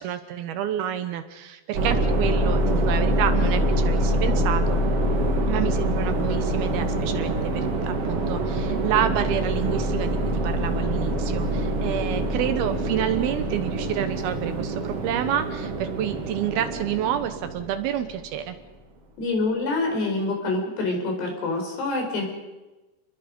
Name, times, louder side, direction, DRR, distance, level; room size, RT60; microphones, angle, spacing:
voice 1, 0.0-4.8 5.5-18.6, right 10 dB, 75° right, 10 dB, 2.7 m, -29 dB
sound 1, 1.7-18.2, right 1 dB, 40° right, 2.5 m, -25 dB
voice 2, 19.2-22.2, left 2 dB, 75° left, 2 dB, 6.8 m, -26 dB
29.5 x 21.0 x 5.3 m, 1.1 s
omnidirectional pair, 4.9 m